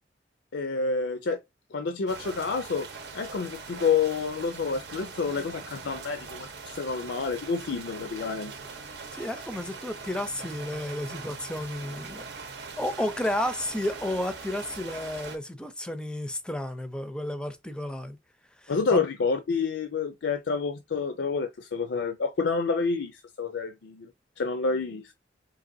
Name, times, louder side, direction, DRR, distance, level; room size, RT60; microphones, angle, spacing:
voice 1, 0.5-1.4 1.7-2.9 3.1-8.5 9.1-9.3 18.7-24.1 24.4-25.1, left 4 dB, 80° left, 0.5 m, -28 dB
sound 1, 2.1-15.4, right 4 dB, 70° right, 0.8 m, -41 dB
voice 2, 9.1-12.5 12.8-18.2 18.9-19.1, left 1 dB, 5° left, 0.5 m, -32 dB
3.9 x 2.9 x 2.6 m
head